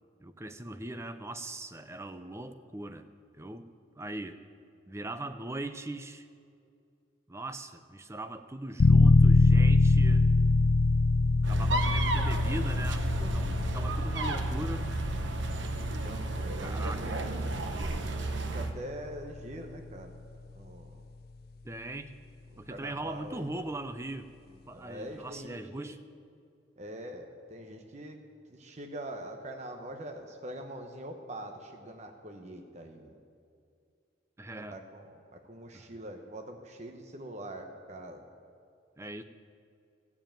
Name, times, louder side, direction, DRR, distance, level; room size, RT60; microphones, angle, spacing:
voice 1, 0.2-3.1 3.4-3.7 4.0-4.4 4.9-6.3 7.3-10.3 11.4-13.1 13.3-14.9 16.6-17.1 21.6-22.1 22.6-24.3 24.7-26.0 34.4-34.8 35.7-35.8 39.0-39.2, right 1 dB, 15° right, 9 dB, 0.5 m, -40 dB
sound 1, 8.8-19.3, left 3 dB, 50° left, 0.5 m, -25 dB
sound 2, 11.4-18.7, right 2 dB, 70° right, 0.9 m, -32 dB
voice 2, 15.7-17.3 18.2-20.2 20.5-21.0 22.5-23.5 24.7-25.9 26.8-28.2 28.5-33.1 34.7-38.2, right 1 dB, 35° right, 4 dB, 0.9 m, -44 dB
14.5 x 7.2 x 9.0 m, 2.3 s
head